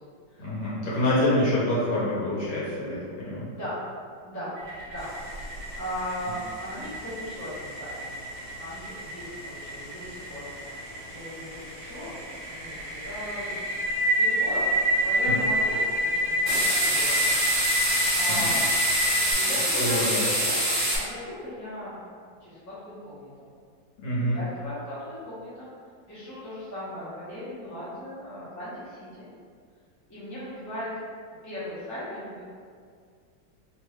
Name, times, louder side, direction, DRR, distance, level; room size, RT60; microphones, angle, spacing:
voice 1, 0.4-3.5 15.2-15.4 18.3-18.5 19.6-20.4 24.0-24.4, left 1 dB, 75° left, -8 dB, 1.7 m, -26 dB
voice 2, 4.2-4.6 4.8-5.1 5.8-8.0 8.6-10.5 11.1-12.2 12.5-13.6 14.2-14.6 15.0-17.3 18.2-18.7 19.4-20.5 20.9-21.9 22.4-23.5 24.3-25.7 26.1-29.3 30.1-30.9 31.4-32.4, equal, 15° left, -12 dB, 0.8 m, -37 dB
sound 1, 4.6-19.3, equal, 65° right, 1.3 m, -28 dB
sound 2, 5.1-5.3 5.6-5.7 5.9-6.3 6.6-7.4 7.8-8.9 9.3-10.7 11.1-11.3 11.6-11.7 12.0-12.4 12.8-13.2 13.8-14.1 14.6-15.2 15.6-15.8 16.4-21.0, equal, 30° right, 1.5 m, -26 dB
3.5 x 2.3 x 3.1 m, 2.1 s
omnidirectional pair, 2.0 m